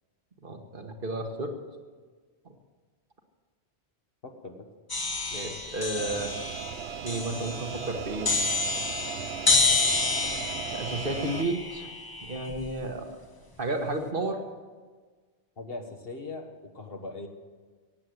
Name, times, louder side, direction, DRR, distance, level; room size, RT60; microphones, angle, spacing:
voice 1, 0.4-1.5 5.3-6.4 7.0-8.3 10.7-11.9 12.2-13.0 13.6-14.4, right 2 dB, 50° right, 4 dB, 1.7 m, -32 dB
voice 2, 4.2-4.7 15.6-17.3, left 3 dB, 60° left, 4 dB, 1.5 m, -40 dB
sound 1, 4.9-12.8, left 3 dB, 20° left, 0.9 m, -29 dB
sound 2, 6.0-11.4, right 9 dB, 70° right, 0.8 m, -38 dB
16.5 x 8.6 x 8.0 m, 1.4 s
omnidirectional pair, 1.1 m